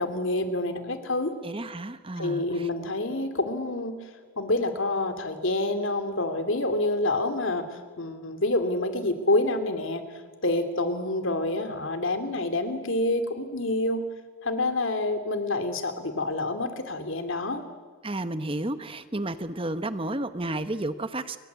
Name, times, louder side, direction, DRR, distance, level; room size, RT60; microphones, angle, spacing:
voice 1, 0.0-1.3 2.2-4.0 4.4-10.0 10.4-14.0 14.4-17.6, left 2 dB, 65° left, 8 dB, 2.8 m, -27 dB
voice 2, 1.4-2.7 18.0-21.4, right 1 dB, 25° right, 11 dB, 1.0 m, -32 dB
29.5 x 23.5 x 8.2 m, 1.5 s
head